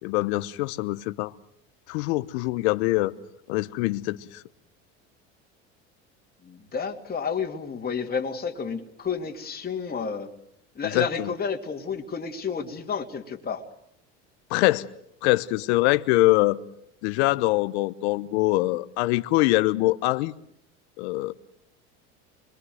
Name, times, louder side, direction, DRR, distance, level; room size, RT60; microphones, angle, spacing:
voice 1, 0.0-1.3 1.9-3.2 3.5-4.4 10.9-11.3 14.5-14.9 15.2-16.6 17.0-20.3 21.0-21.3, left 19 dB, 75° left, 1.0 m, -23 dB
voice 2, 6.4-10.3 10.7-13.6, left 6 dB, 25° left, 2.5 m, -31 dB
25.0 x 23.0 x 7.9 m
hypercardioid pair, 85°, 33 cm